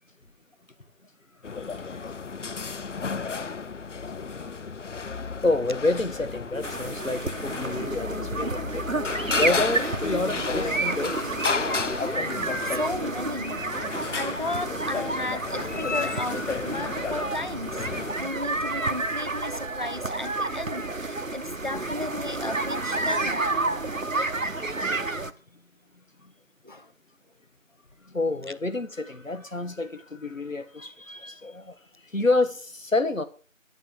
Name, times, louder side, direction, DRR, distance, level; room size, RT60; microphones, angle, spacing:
sound 1, 1.4-18.1, left 5 dB, 65° left, 0.6 m, -33 dB
voice 1, 5.4-8.7 9.3-11.4 28.1-31.8 32.1-33.2, left 2 dB, 80° left, 1.8 m, -28 dB
sound 2, 6.6-25.3, right 2 dB, 80° right, 1.3 m, -30 dB
voice 2, 12.6-17.9 18.2-20.9 21.3-23.4 26.6-26.9, left 2 dB, 40° right, 0.7 m, -34 dB
11.0 x 9.0 x 6.7 m
figure-of-eight pair, 170°, 39 cm